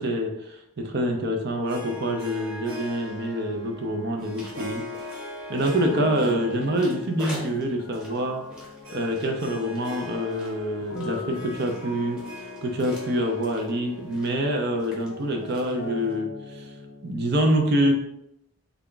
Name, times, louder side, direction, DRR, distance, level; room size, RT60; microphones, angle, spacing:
voice 1, 0.0-4.8 5.5-8.5 8.9-12.2 12.6-16.7 17.0-17.9, right 1 dB, 50° right, 4 dB, 0.5 m, -26 dB
Harp, 1.7-15.3, left 2 dB, 65° right, 1.3 m, -41 dB
sound 1, 4.3-16.2, left 1 dB, 5° right, 0.9 m, -47 dB
sound 2, 5.8-17.1, left 4 dB, 60° left, 0.6 m, -40 dB
3.4 x 2.3 x 3.8 m, 0.81 s
head